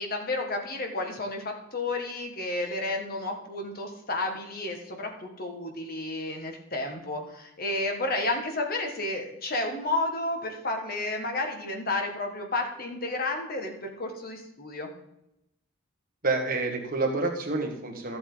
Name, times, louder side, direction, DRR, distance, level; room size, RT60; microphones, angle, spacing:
voice 1, 0.0-14.9, left 2 dB, 45° left, 3 dB, 1.7 m, -31 dB
voice 2, 16.2-18.2, right 3 dB, 45° right, 2 dB, 1.6 m, -28 dB
13.0 x 8.2 x 3.9 m, 0.84 s
head